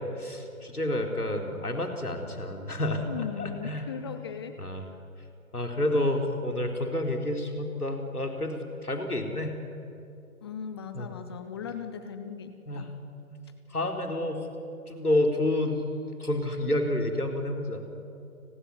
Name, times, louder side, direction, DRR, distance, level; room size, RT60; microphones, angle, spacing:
voice 1, 0.0-3.9 4.6-4.9 5.5-9.5 10.9-11.1 12.7-12.9 13.3-13.4 13.7-14.5 14.9-15.8 16.2-17.9, left 1 dB, 85° left, 3 dB, 4.2 m, -29 dB
voice 2, 2.9-4.6 5.9-6.1 10.4-12.9, left 7 dB, 20° left, 10 dB, 0.8 m, -38 dB
30.0 x 18.5 x 9.7 m, 2.5 s
figure-of-eight pair, 140°, 44 cm